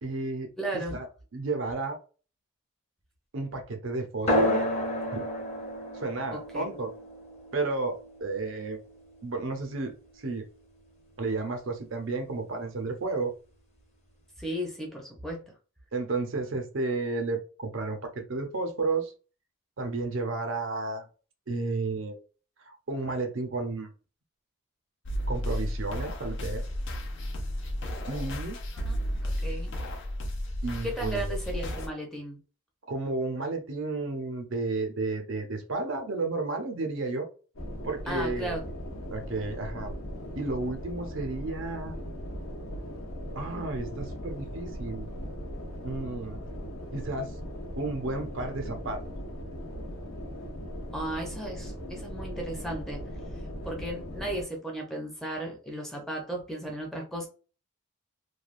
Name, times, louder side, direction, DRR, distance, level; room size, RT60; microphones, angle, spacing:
voice 1, 0.0-1.1 1.3-2.0 3.3-4.6 5.1-5.2 5.9-6.9 7.5-8.8 9.2-10.4 11.2-13.3 15.9-19.1 19.8-21.0 21.5-22.2 22.6-23.9 25.3-26.6 28.1-28.6 30.6-31.4 32.9-37.3 37.8-38.6 39.1-39.9 40.4-42.0 43.4-45.1 45.8-46.4 46.9-47.3 47.8-49.0, right 3 dB, 60° right, 5 dB, 0.6 m, -32 dB
voice 2, 0.6-1.0 6.3-6.8 14.4-15.4 28.7-29.8 30.8-32.4 38.1-38.6 50.9-53.0 53.6-57.3, right 1 dB, ahead, -1 dB, 0.6 m, -35 dB
sound 1, 4.3-9.3, equal, 30° left, 0.9 m, -31 dB
sound 2, 25.1-31.9, equal, 55° left, 0.6 m, -33 dB
sound 3, 37.5-54.4, equal, 80° left, 0.9 m, -39 dB
3.2 x 2.2 x 2.5 m, 0.36 s
head